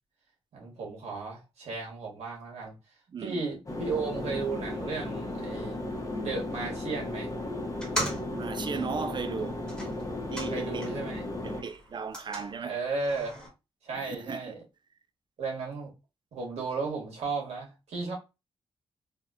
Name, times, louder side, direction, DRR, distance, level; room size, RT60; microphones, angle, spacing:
voice 1, 0.5-2.7 3.2-5.8 6.2-7.3 10.5-11.2 12.6-13.4 13.8-14.6 15.4-15.9 16.3-18.1, right 4 dB, 80° right, 1.6 m, -34 dB
voice 2, 3.1-3.5 8.3-9.7 10.3-10.9 11.4-12.8 13.9-14.5, right 5 dB, 45° right, 0.3 m, -36 dB
sound 1, 3.7-11.6, left 1 dB, 30° left, 0.9 m, -35 dB
sound 2, 7.7-11.2 11.5-13.5, equal, 5° left, 1.5 m, -39 dB
3.5 x 2.6 x 2.5 m
cardioid pair, 95°, 11 cm